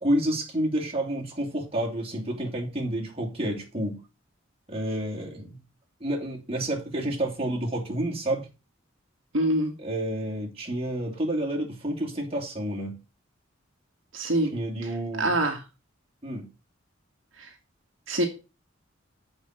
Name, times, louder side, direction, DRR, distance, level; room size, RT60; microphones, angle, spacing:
voice 1, 0.0-4.0 4.7-5.6 6.0-8.5 9.8-13.0 14.5-15.4 16.2-16.5, right 1 dB, 30° right, 2.9 m, -29 dB
voice 2, 9.3-9.7 14.1-14.5 14.8-14.9 15.2-15.6 17.4-17.5 18.1-18.3, right 1 dB, 70° right, 1.9 m, -25 dB
7.8 x 5.3 x 6.5 m
head